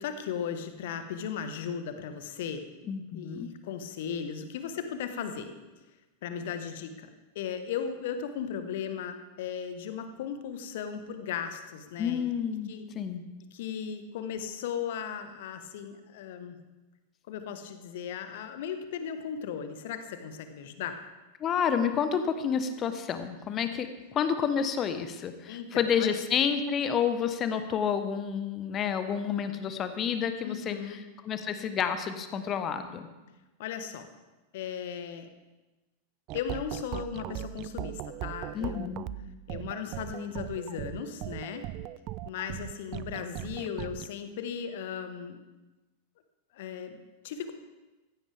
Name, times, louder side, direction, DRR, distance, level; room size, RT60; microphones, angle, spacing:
voice 1, 0.0-2.7 3.1-5.5 6.2-7.1 7.3-12.3 12.7-12.9 13.5-16.6 17.3-21.0 25.5-26.2 30.4-31.0 33.6-34.1 34.5-35.3 36.3-39.0 39.5-41.7 42.2-45.4 46.5-47.5, left 7 dB, 55° left, 8 dB, 1.4 m, -36 dB
voice 2, 2.9-3.5 12.0-13.2 21.4-31.0 31.2-33.1 38.5-39.0, left 7 dB, 30° left, 9 dB, 1.2 m, -29 dB
sound 1, 36.3-44.1, right 15 dB, 40° right, 0.4 m, -39 dB
15.5 x 15.0 x 3.5 m, 1.1 s
figure-of-eight pair, 90°, 0 cm